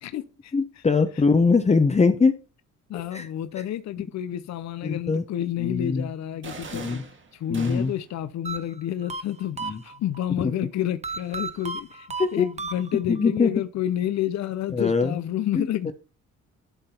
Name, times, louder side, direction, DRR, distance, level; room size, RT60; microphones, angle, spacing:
voice 1, 0.0-0.8 2.9-15.9, left 11 dB, 65° left, 0.7 m, -30 dB
voice 2, 0.5-2.4 3.1-3.2 4.8-5.2 5.6-6.0 6.7-7.0 7.5-7.9 9.6-9.8 12.2-12.5 13.1-13.5 14.7-15.2 15.5-15.7, left 4 dB, 20° left, 0.8 m, -22 dB
sound 1, 6.4-8.2, right 4 dB, 40° right, 1.7 m, -40 dB
sound 2, 8.4-10.3 11.0-13.3, right 3 dB, 20° right, 0.8 m, -34 dB
11.5 x 3.8 x 4.4 m
cardioid pair, 90°, 30 cm